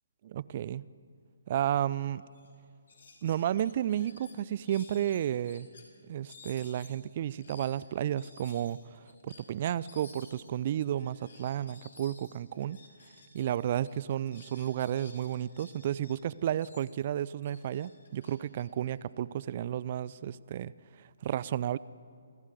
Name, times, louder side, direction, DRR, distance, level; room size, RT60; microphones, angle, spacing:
voice 1, 0.2-0.8 1.5-2.2 3.2-5.7 6.1-8.8 9.2-12.8 13.3-20.7 21.2-21.8, right 11 dB, 35° right, 20 dB, 0.5 m, -32 dB
sound 1, 1.9-2.0 2.3-2.5 2.9-5.8 6.2-13.6 13.8-16.1 16.5-19.4, left 4 dB, 60° left, 5.5 m, -55 dB
27.5 x 15.5 x 8.3 m, 2.3 s
figure-of-eight pair, 140°, 0 cm